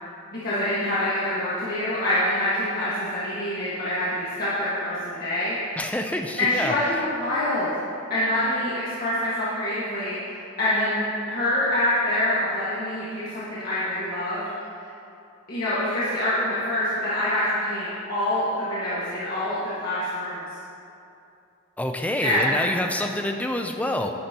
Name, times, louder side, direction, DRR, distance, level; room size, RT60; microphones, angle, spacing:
voice 1, 0.3-5.6 6.4-7.7 8.1-14.4 15.5-20.4 22.2-22.6, left 1 dB, 45° left, -11 dB, 1.7 m, -26 dB
voice 2, 5.8-6.7 21.8-24.1, left 1 dB, 5° left, 4 dB, 0.4 m, -27 dB
11.0 x 10.5 x 2.9 m, 2.7 s
head